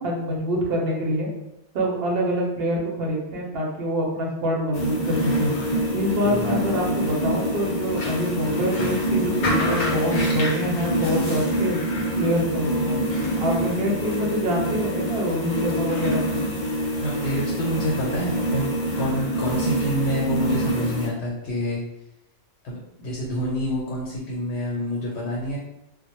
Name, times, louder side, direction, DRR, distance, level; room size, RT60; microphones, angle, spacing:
voice 1, 0.0-1.3 1.7-5.5 5.9-11.8 12.1-13.0 13.4-16.4, equal, 60° right, -2 dB, 0.8 m, -25 dB
sound 1, 4.7-21.1, equal, 50° left, 0.6 m, -25 dB
voice 2, 17.0-18.7 19.0-21.8 22.6-25.6, equal, 75° left, -4 dB, 0.9 m, -27 dB
2.1 x 2.0 x 2.9 m, 0.89 s
omnidirectional pair, 1.2 m